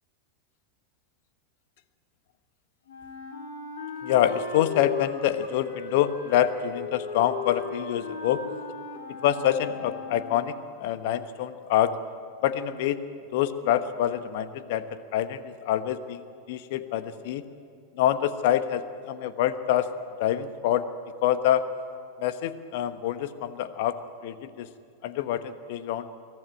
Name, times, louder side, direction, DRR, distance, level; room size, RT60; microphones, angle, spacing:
Wind instrument woodwind instrument, 2.9-10.6, left 5 dB, 70° left, 2.9 m, -37 dB
voice 1, 4.0-8.4 9.2-11.9 12.4-13.0 13.3-17.4 18.0-19.9 20.2-20.9 21.2-21.7 22.2-24.0 24.2-24.7 25.0-26.1, left 11 dB, 55° left, 12 dB, 1.2 m, -26 dB
23.0 x 15.5 x 9.9 m, 2.2 s
figure-of-eight pair, 90°, 0 cm